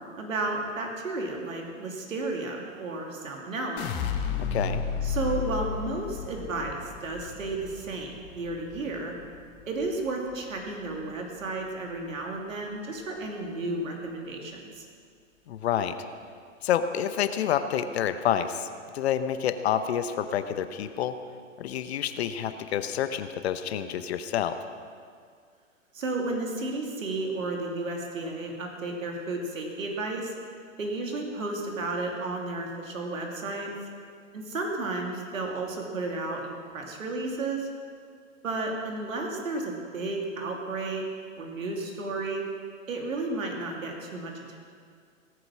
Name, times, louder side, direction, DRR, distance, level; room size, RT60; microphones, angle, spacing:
voice 1, 0.2-3.8 5.0-9.1 9.7-14.8 25.9-30.3 30.8-33.7 34.3-37.7 38.4-41.0 41.4-42.5 42.9-44.6, right 2 dB, 75° right, 0 dB, 2.8 m, -33 dB
sound 1, 3.8-9.9 10.3-10.9, left 6 dB, 25° left, 1.2 m, -33 dB
voice 2, 4.4-4.8 15.5-16.0 16.6-18.7 18.9-21.1 21.6-24.6, left 9 dB, 50° left, 10 dB, 0.9 m, -28 dB
17.5 x 9.3 x 6.2 m, 2.1 s
hypercardioid pair, 125°, 40 cm